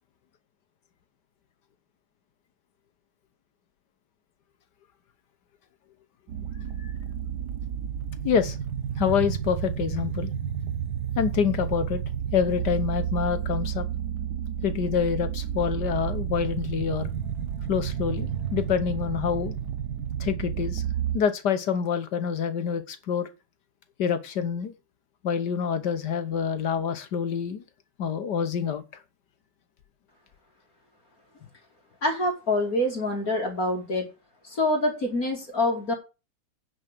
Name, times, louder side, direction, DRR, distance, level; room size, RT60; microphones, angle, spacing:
sound 1, 6.3-21.2, right 9 dB, 55° right, 1.6 m, -31 dB
voice 1, 8.2-8.6 9.0-10.3 11.2-12.0 12.3-13.8 14.6-17.1 17.7-19.5 20.2-20.8 21.1-23.3 24.0-24.7 25.2-27.6 28.0-28.8, left 7 dB, 60° left, 1.5 m, -26 dB
voice 2, 32.0-34.1 34.4-35.9, left 1 dB, 40° left, 3.0 m, -26 dB
9.5 x 5.8 x 7.5 m
omnidirectional pair, 2.3 m